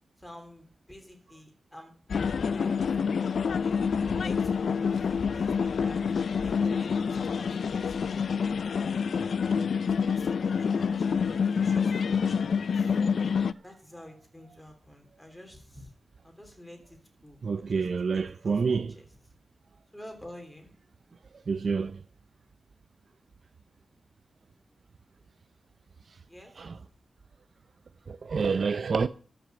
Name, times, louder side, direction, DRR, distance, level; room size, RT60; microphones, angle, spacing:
voice 1, 0.2-3.8 4.1-5.1 5.3-6.0 6.4-8.2 10.0-13.0 13.6-15.9 16.2-17.8 18.1-19.1 19.9-20.7 26.3-26.5, left 1 dB, 5° left, 3.4 m, -49 dB
sound 1, 2.1-13.5, left 6 dB, 75° left, 0.5 m, -27 dB
voice 2, 17.4-18.9 21.5-22.0 26.6-26.8 28.1-29.1, right 5 dB, 55° right, 0.5 m, -28 dB
13.0 x 6.1 x 8.1 m
wide cardioid pair, 140°, 0 cm